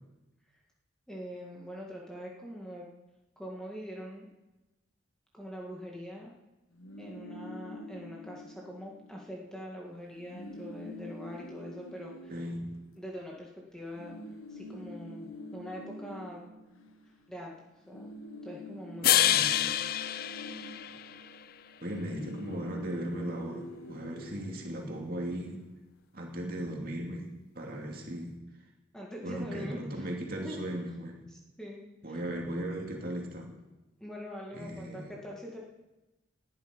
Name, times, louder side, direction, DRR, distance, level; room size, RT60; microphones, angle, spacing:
voice 1, 1.1-2.9 3.4-4.3 5.3-6.3 7.0-12.3 13.0-14.2 14.5-16.5 17.3-17.5 17.9-18.1 18.4-19.1 28.9-30.1 30.4-30.6 31.3-31.8 32.1-32.2 34.0-35.6, equal, 5° left, -2 dB, 1.8 m, -43 dB
sound 1, 6.7-9.3 9.6-9.7 10.0-13.4 13.9-17.5 17.8-25.4, left 1 dB, 90° left, 1.6 m, -46 dB
voice 2, 12.3-12.7 19.0-19.5 21.8-25.6 26.1-27.3 27.5-28.4 29.2-31.2 32.0-33.5 34.5-35.1, right 1 dB, 45° right, 0 dB, 2.7 m, -37 dB
sound 2, 19.0-21.4, left 12 dB, 45° left, 0.4 m, -27 dB
19.0 x 11.0 x 5.2 m, 1.0 s
head